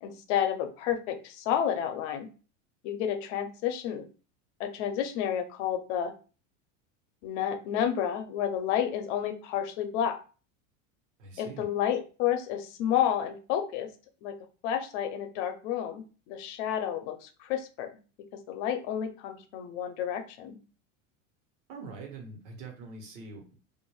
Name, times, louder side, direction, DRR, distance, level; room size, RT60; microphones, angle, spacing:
voice 1, 0.0-2.3 2.8-4.0 4.6-6.1 7.2-10.2 11.4-13.9 14.2-14.4 14.6-17.9 18.3-20.6, left 9 dB, 70° left, 8 dB, 0.7 m, -30 dB
voice 2, 11.2-11.7 21.7-23.6, right 4 dB, 75° right, 3 dB, 1.2 m, -44 dB
2.5 x 2.2 x 3.1 m, 0.36 s
supercardioid pair, 120°, 38 cm